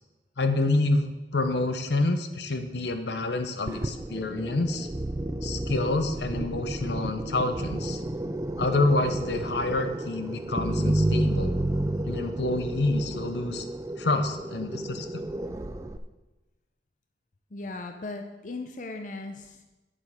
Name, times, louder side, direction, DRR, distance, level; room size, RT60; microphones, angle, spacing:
voice 1, 0.4-4.9 5.4-8.0 8.6-11.6 12.0-13.6 14.0-15.1, left 2 dB, 75° left, 8 dB, 0.8 m, -27 dB
sound 1, 3.7-16.0, right 1 dB, 15° right, 0.4 m, -31 dB
voice 2, 17.5-19.7, left 2 dB, 45° left, 5 dB, 0.6 m, -37 dB
8.7 x 7.4 x 4.9 m, 1.1 s
head